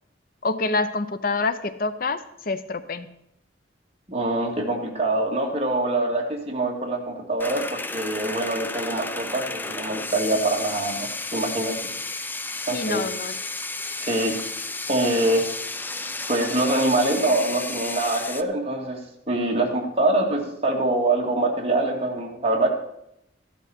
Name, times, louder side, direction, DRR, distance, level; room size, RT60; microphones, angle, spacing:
voice 1, 0.4-3.1 12.7-13.3, left 3 dB, 50° left, 12 dB, 0.6 m, -27 dB
voice 2, 4.1-11.7 12.7-13.0 14.0-14.4 14.9-15.4 16.3-19.0 19.3-22.7, right 2 dB, 30° right, 0 dB, 2.3 m, -24 dB
sound 1, 7.4-18.4, left 3 dB, 10° left, 0.4 m, -32 dB
14.0 x 12.0 x 4.3 m, 0.79 s
head